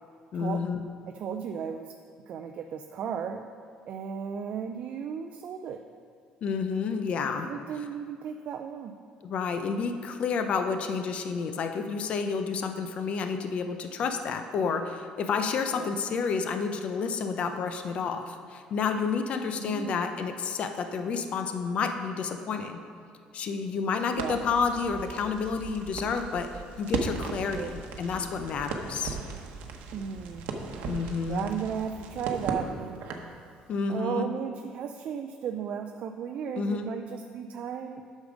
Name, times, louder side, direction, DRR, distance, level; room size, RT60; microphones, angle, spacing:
voice 1, 0.3-0.8 6.4-7.5 9.2-22.8 23.3-26.5 26.8-29.2 30.8-31.5 33.7-34.3 36.5-36.9, left 5 dB, 50° left, 7 dB, 0.6 m, -30 dB
voice 2, 1.1-1.9 2.3-3.5 3.9-5.8 7.4-8.9 15.8-15.9 19.5-20.0 24.2-24.4 27.5-27.7 29.9-30.5 31.3-33.0 33.9-38.0, right 7 dB, 55° right, 5 dB, 0.4 m, -35 dB
Crackle, 24.1-33.4, right 5 dB, 85° right, 0.9 m, -37 dB
8.2 x 6.4 x 5.1 m, 2.3 s
cardioid pair, 125°, 3 cm